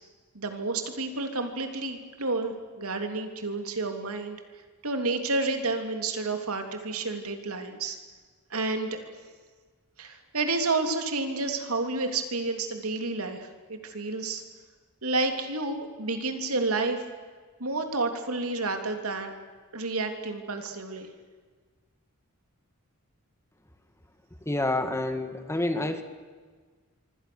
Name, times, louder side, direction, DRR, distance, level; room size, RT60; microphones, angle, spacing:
voice 1, 0.3-4.4 4.8-8.0 8.5-9.1 10.0-14.4 15.0-17.0 17.6-19.3 19.7-21.1, right 3 dB, 75° right, 5 dB, 3.2 m, -30 dB
voice 2, 24.5-26.0, left 2 dB, 15° left, 8 dB, 1.8 m, -28 dB
26.5 x 25.0 x 7.1 m, 1.5 s
head